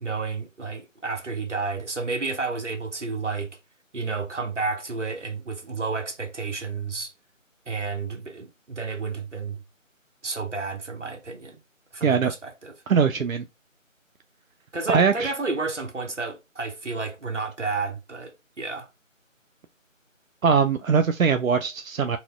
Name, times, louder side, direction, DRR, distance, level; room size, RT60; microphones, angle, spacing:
voice 1, 0.0-3.6 3.9-7.1 7.7-9.6 10.2-11.6 11.9-12.7 14.7-18.9, right 4 dB, 60° right, 1.0 m, -31 dB
voice 2, 12.0-12.3 12.9-13.4 14.9-15.3 20.4-22.2, right 6 dB, 90° right, 0.5 m, -21 dB
4.1 x 2.2 x 2.3 m
figure-of-eight pair, 165°, 40 cm